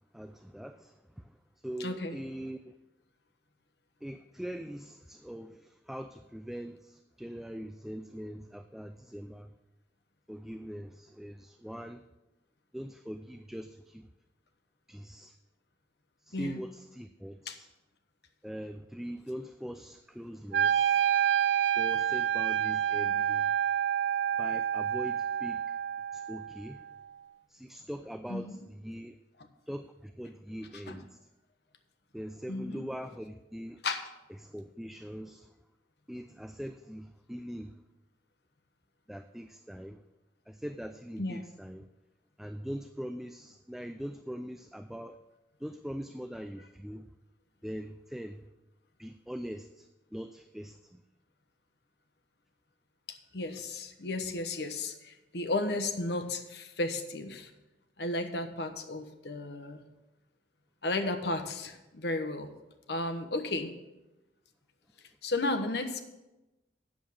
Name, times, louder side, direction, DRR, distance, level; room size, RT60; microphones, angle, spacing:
voice 1, 0.1-1.3 1.6-2.7 4.0-9.5 10.3-12.0 12.7-14.1 14.9-15.4 16.2-17.7 18.4-21.1 21.8-23.6 24.4-25.8 26.1-26.8 27.5-29.2 29.7-31.2 32.1-33.8 34.4-35.5 36.1-37.8 39.1-40.0 40.5-41.9 42.4-45.2 45.6-47.1 47.6-48.4 49.0-51.0, equal, ahead, 8 dB, 0.3 m, -42 dB
voice 2, 1.8-2.2 16.3-16.6 17.5-17.6 28.3-28.6 30.7-31.0 32.5-32.9 33.8-34.0 41.2-41.4 53.1-57.5 58.0-59.8 60.8-62.5 62.9-63.7 65.2-66.0, left 2 dB, 65° left, 7 dB, 1.1 m, -34 dB
Wind instrument woodwind instrument, 20.5-26.6, right 9 dB, 85° right, 0.3 m, -28 dB
8.9 x 7.2 x 6.3 m, 1.0 s
head